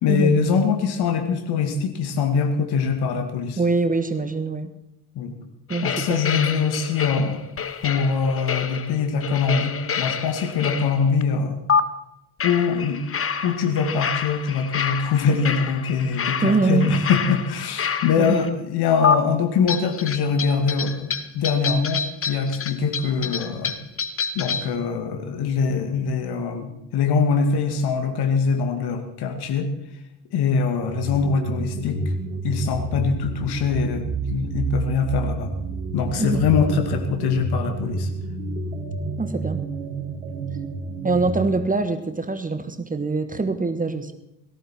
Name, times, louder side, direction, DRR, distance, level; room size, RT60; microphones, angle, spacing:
voice 1, 0.0-3.6 5.2-5.4 5.8-7.4 7.8-11.6 12.4-13.0 13.4-23.7 24.3-29.7 30.3-32.0 32.4-35.5 35.9-38.1, left 5 dB, 60° left, 6 dB, 2.3 m, -23 dB
voice 2, 3.6-4.7 5.7-6.2 16.4-16.9 18.2-18.4 36.2-36.4 39.2-39.6 41.0-44.1, right 3 dB, 20° right, 10 dB, 1.5 m, -23 dB
sound 1, 5.7-11.2 11.7-11.8 12.4-18.5 19.0-19.2 19.7-24.8, left 6 dB, 30° left, 1.2 m, -28 dB
sound 2, 30.8-41.6, right 3 dB, 85° right, 2.2 m, -29 dB
18.0 x 14.5 x 4.5 m, 0.83 s
hypercardioid pair, 55°, 43 cm